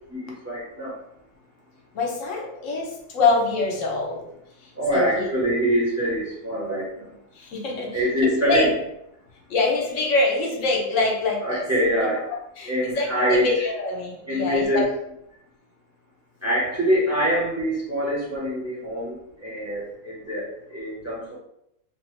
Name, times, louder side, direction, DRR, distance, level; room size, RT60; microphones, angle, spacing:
voice 1, 0.1-1.0 4.7-7.1 7.9-8.8 11.4-12.3 12.7-13.7 14.3-14.9 16.4-21.4, equal, 15° right, -6 dB, 0.8 m, -24 dB
voice 2, 2.0-2.9 3.1-4.2 4.9-5.3 7.6-7.9 8.2-8.7 9.5-11.6 12.6-12.7 13.0-14.8, left 3 dB, 70° left, -1 dB, 1.1 m, -24 dB
3.0 x 2.4 x 3.1 m, 0.79 s
omnidirectional pair, 1.4 m